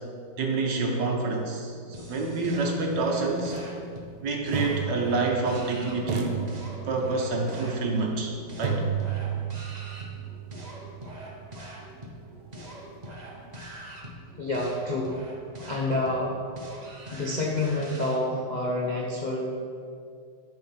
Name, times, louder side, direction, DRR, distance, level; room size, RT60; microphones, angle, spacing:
voice 1, 0.4-3.6 4.2-6.4 6.9-8.8, right 3 dB, 60° right, 1 dB, 1.5 m, -27 dB
sound 1, 1.9-18.2, right 1 dB, 30° right, 0.8 m, -43 dB
sound 2, 3.4-3.6 4.5-5.7 6.1-7.3 8.6-12.6, right 6 dB, 80° right, 1.8 m, -33 dB
voice 2, 14.3-15.2 15.6-16.4 17.1-19.5, left 2 dB, 40° left, -4 dB, 0.6 m, -28 dB
12.0 x 4.2 x 5.8 m, 2.3 s
omnidirectional pair, 2.3 m